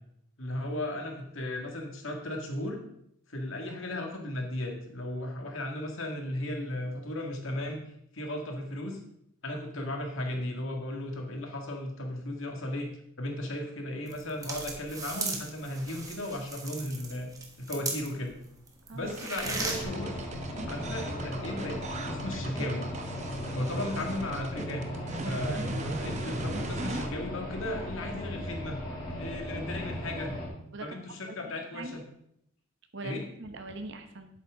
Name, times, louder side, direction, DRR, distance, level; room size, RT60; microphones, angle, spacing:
voice 1, 0.4-2.8 3.3-7.8 8.1-9.0 9.4-12.9 13.2-17.3 17.6-18.3 18.9-20.1 20.7-22.9 23.5-24.9 25.2-28.8 29.2-30.3 30.8-32.0 33.0-33.2, left 1 dB, 60° left, 2 dB, 1.9 m, -35 dB
sound 1, 14.1-18.3 18.7-19.8, right 3 dB, 15° right, 1.3 m, -36 dB
sound 2, 19.1-27.1, right 2 dB, 30° right, 0.9 m, -38 dB
sound 3, 19.4-30.5, equal, 20° left, 2.5 m, -37 dB
voice 2, 32.9-34.3, right 2 dB, 55° right, 7 dB, 1.1 m, -42 dB
11.0 x 8.4 x 3.7 m, 0.73 s
head